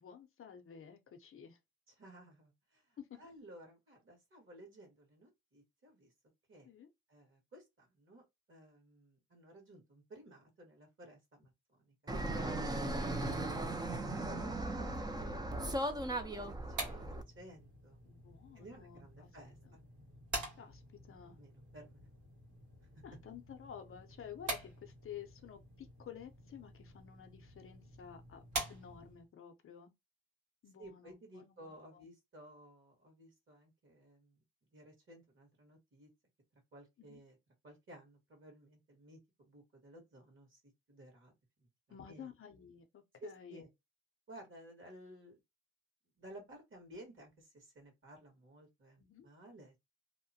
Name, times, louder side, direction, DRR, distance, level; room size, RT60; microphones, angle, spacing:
voice 1, 0.0-1.6 3.0-3.2 6.6-6.9 14.2-14.5 18.1-19.3 19.7-19.8 20.6-20.8 21.1-21.4 23.0-29.9 30.6-32.0 37.0-37.2 41.9-43.6 49.0-49.3, left 8 dB, 45° left, 0.6 m, -52 dB
voice 2, 1.9-6.1 6.5-6.7 7.1-11.9 12.3-13.5 14.7-15.7 16.1-18.0 18.5-19.8 21.2-22.1 22.9-23.0 30.8-34.4 34.7-36.1 36.5-37.4 37.6-40.6 40.9-41.3 41.6-42.3 43.2-43.7 44.3-45.4 46.2-49.8, right 1 dB, 40° right, 1.5 m, -56 dB
Fixed-wing aircraft airplane, 12.1-17.2, right 1 dB, 15° right, 0.4 m, -37 dB
sound 1, 16.4-29.3, right 2 dB, 80° right, 1.6 m, -47 dB
2.8 x 2.1 x 2.7 m
cardioid pair, 90°, 30 cm